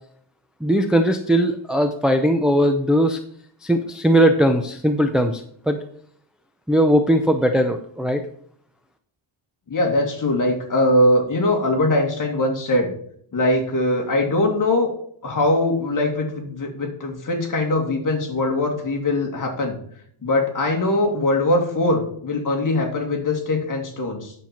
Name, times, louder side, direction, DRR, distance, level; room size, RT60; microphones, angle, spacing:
voice 1, 0.6-3.2 3.6-5.8 6.7-8.2, equal, ahead, 5 dB, 0.5 m, -19 dB
voice 2, 9.7-12.9 13.3-14.9 15.2-19.7 20.2-24.3, left 1 dB, 40° left, 1 dB, 2.4 m, -21 dB
9.8 x 7.6 x 4.3 m, 0.63 s
wide cardioid pair, 160°, 49 cm